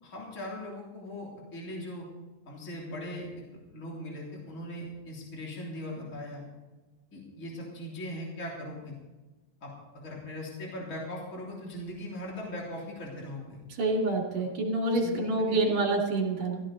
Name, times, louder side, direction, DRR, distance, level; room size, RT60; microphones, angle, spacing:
voice 1, 0.0-2.0 2.4-3.3 3.7-6.4 7.1-8.9 9.6-13.6 14.4-14.5 14.9-15.7, left 1 dB, 25° left, -3 dB, 3.4 m, -40 dB
voice 2, 13.7-16.6, right 2 dB, 65° right, -1 dB, 4.1 m, -27 dB
16.0 x 15.0 x 4.0 m, 1.2 s
omnidirectional pair, 3.4 m